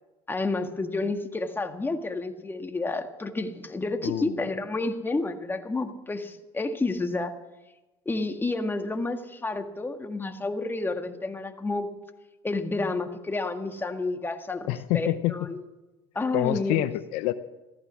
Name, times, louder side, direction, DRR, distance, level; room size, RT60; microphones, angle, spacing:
voice 1, 0.3-7.3 8.1-11.9 12.4-15.6 16.2-16.9, left 3 dB, 15° left, 6 dB, 1.8 m, -30 dB
voice 2, 4.0-4.4 14.7-15.3 16.3-17.3, left 15 dB, 75° left, 12 dB, 0.7 m, -27 dB
14.5 x 14.5 x 6.3 m, 1.1 s
supercardioid pair, 85°, 12 cm